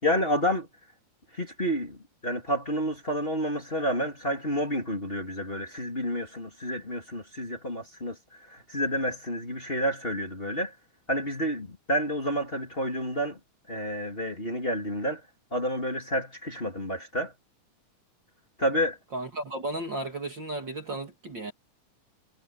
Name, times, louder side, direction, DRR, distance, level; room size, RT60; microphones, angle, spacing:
voice 1, 0.0-0.7 1.3-10.7 11.1-13.4 13.7-15.2 15.5-17.3 18.6-19.0, equal, 15° left, 3.3 m, -29 dB
voice 2, 19.1-21.5, right 2 dB, 35° right, 2.9 m, -34 dB
omnidirectional pair, 3.7 m